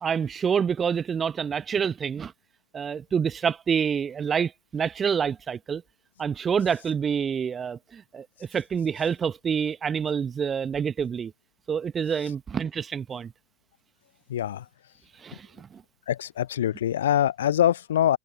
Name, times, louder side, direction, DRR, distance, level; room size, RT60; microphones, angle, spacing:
voice 1, 0.0-2.3 2.7-5.8 6.2-11.3 11.7-13.3 15.2-15.8, right 7 dB, 20° right, 1.4 m, -27 dB
voice 2, 14.3-14.6 16.1-18.2, left 11 dB, 60° left, 0.6 m, -24 dB
figure-of-eight pair, 90°, 0 cm